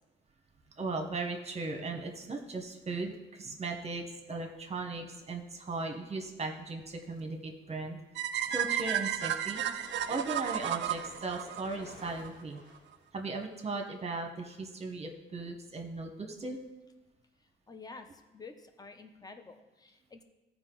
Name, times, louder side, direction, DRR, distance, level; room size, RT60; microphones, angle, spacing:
voice 1, 0.8-8.0 8.5-12.6 13.1-16.6, right 3 dB, 30° right, 3 dB, 1.1 m, -37 dB
sound 1, 8.2-12.3, right 10 dB, 65° right, 0.5 m, -33 dB
sound 2, 8.3-13.4, left 2 dB, 55° left, 2.9 m, -55 dB
voice 2, 17.4-20.2, left 4 dB, 20° left, 7 dB, 0.8 m, -50 dB
14.0 x 5.0 x 3.9 m, 1.1 s
cardioid pair, 90°, 20 cm